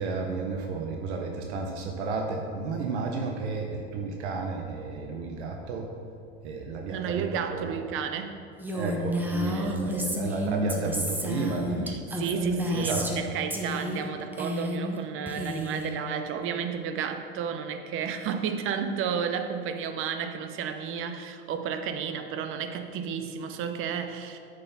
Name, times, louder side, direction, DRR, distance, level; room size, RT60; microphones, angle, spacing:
voice 1, 0.0-5.9 6.4-7.2 7.7-7.8 8.7-11.9 12.3-12.4 12.7-13.1, right 4 dB, 85° right, 2 dB, 1.0 m, -32 dB
voice 2, 6.9-8.3 9.4-9.8 11.9-24.4, right 7 dB, 40° right, 7 dB, 0.8 m, -32 dB
Female speech woman speaking, 8.6-13.2 13.5-14.1 14.3-15.0 15.3-15.9, equal, 5° right, 0.8 m, -31 dB
9.0 x 6.6 x 4.1 m, 2.4 s
supercardioid pair, 130°, 33 cm